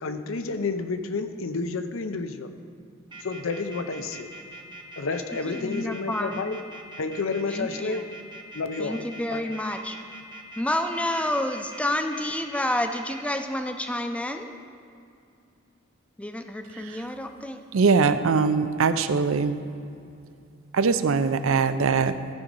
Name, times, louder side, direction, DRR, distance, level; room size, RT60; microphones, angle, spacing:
voice 1, 0.0-2.5 3.2-4.3 5.0-6.6 7.0-8.0 8.5-9.4, left 4 dB, 75° left, 9 dB, 0.6 m, -30 dB
sound 1, 3.1-13.2, right 2 dB, 25° right, 0.8 m, -43 dB
voice 2, 5.5-6.4 7.5-8.0 8.8-10.0 10.6-14.5 16.2-17.6, left 1 dB, 5° left, 6 dB, 0.5 m, -29 dB
voice 3, 17.7-19.6 20.7-22.1, right 5 dB, 75° right, 11 dB, 0.5 m, -21 dB
14.0 x 5.0 x 5.3 m, 2.5 s
head